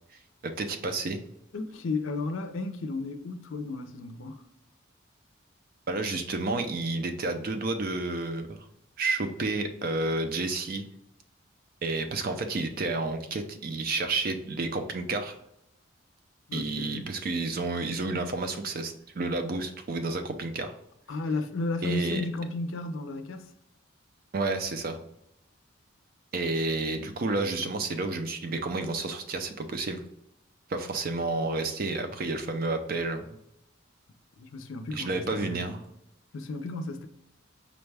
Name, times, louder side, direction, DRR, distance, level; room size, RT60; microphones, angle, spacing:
voice 1, 0.4-1.2 5.9-8.7 9.0-10.9 11.8-15.4 16.5-20.8 21.8-22.2 24.3-25.0 26.3-30.0 30.7-33.3 34.9-35.8, right 3 dB, 45° right, 0.4 m, -30 dB
voice 2, 1.5-4.5 16.5-17.1 21.1-23.5 34.4-35.7 36.3-37.1, left 3 dB, 70° left, 0.5 m, -33 dB
5.1 x 2.2 x 3.2 m
head